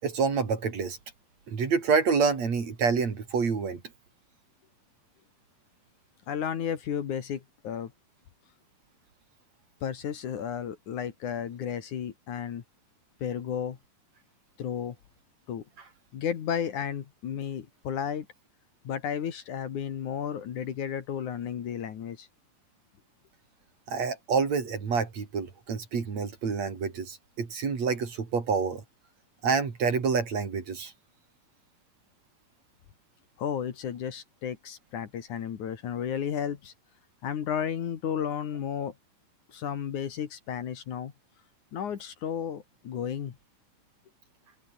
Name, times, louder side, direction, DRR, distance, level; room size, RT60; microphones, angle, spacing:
voice 1, 0.0-1.0 1.5-3.8 23.9-28.8 29.4-30.9, right 5 dB, 50° right, 4.4 m, -27 dB
voice 2, 6.3-7.9 9.8-12.6 13.2-13.8 14.6-15.0 15.5-15.6 16.1-18.3 18.8-22.3 33.4-36.7 37.2-38.9 39.5-41.1 41.7-43.4, left 8 dB, 60° left, 3.2 m, -33 dB
open air
omnidirectional pair, 4.1 m